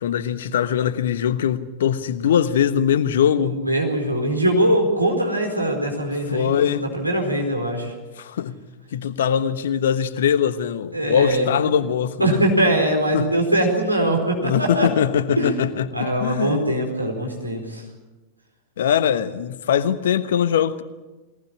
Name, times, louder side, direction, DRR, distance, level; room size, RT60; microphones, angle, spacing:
voice 1, 0.0-3.6 6.3-6.8 8.2-8.5 8.9-12.4 13.1-13.3 14.4-15.9 16.2-16.6 18.8-20.8, left 8 dB, 60° left, 1.2 m, -21 dB
voice 2, 3.5-7.9 10.9-11.5 12.2-14.9 15.4-15.5 15.9-17.8, right 1 dB, 85° right, 4.5 m, -22 dB
22.0 x 19.0 x 8.8 m
figure-of-eight pair, 90°, 0 cm